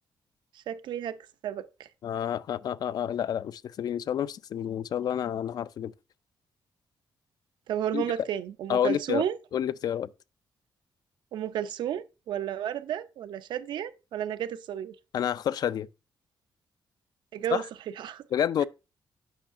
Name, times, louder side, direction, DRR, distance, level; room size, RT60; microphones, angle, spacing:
voice 1, 0.5-1.9 7.7-9.4 11.3-15.0 17.3-17.6 18.0-18.2, right 10 dB, 80° right, 0.5 m, -32 dB
voice 2, 2.0-5.9 7.9-8.1 8.7-9.2 9.5-10.1 15.1-15.9 17.5-17.7 18.3-18.6, left 9 dB, 60° left, 0.3 m, -29 dB
8.7 x 5.5 x 2.5 m
cardioid pair, 140°, 8 cm